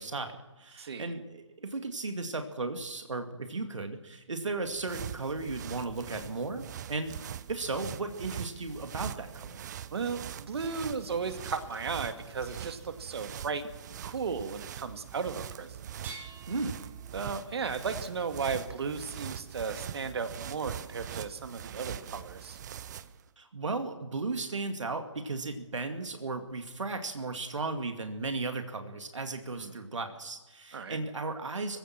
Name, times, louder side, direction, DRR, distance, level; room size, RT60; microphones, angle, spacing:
voice 1, 0.0-7.1 7.5-9.6 16.5-16.8 23.4-31.8, right 3 dB, 70° right, 5 dB, 2.3 m, -35 dB
voice 2, 0.8-1.1 9.9-15.9 17.1-22.6 29.5-29.9 30.7-31.0, right 5 dB, 50° right, 8 dB, 2.1 m, -35 dB
sound 1, 4.5-23.2, right 9 dB, 35° right, 0.8 m, -42 dB
sound 2, 10.9-14.6 14.8-15.1 17.4-17.5, left 4 dB, 15° left, 6.5 m, -62 dB
sound 3, 16.0-19.1 20.7-20.8 21.6-21.7, right 4 dB, 10° right, 3.0 m, -51 dB
25.0 x 16.5 x 7.5 m, 1.1 s
figure-of-eight pair, 140°, 17 cm